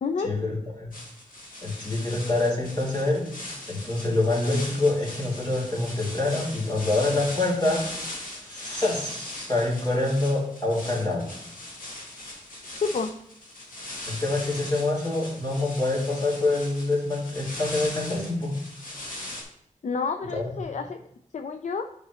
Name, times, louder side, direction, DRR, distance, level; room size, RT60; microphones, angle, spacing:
voice 1, 0.2-0.9 1.6-3.2 3.7-7.8 8.4-11.3 14.1-18.5 20.3-20.5, left 2 dB, 30° left, -5 dB, 3.2 m, -26 dB
sound 1, 0.9-19.4, left 1 dB, 90° left, 1.9 m, -39 dB
voice 2, 12.8-13.1 19.8-21.0 21.3-21.9, left 5 dB, 60° left, 7 dB, 0.5 m, -29 dB
10.5 x 5.1 x 3.1 m, 0.74 s
wide cardioid pair, 95°, 14 cm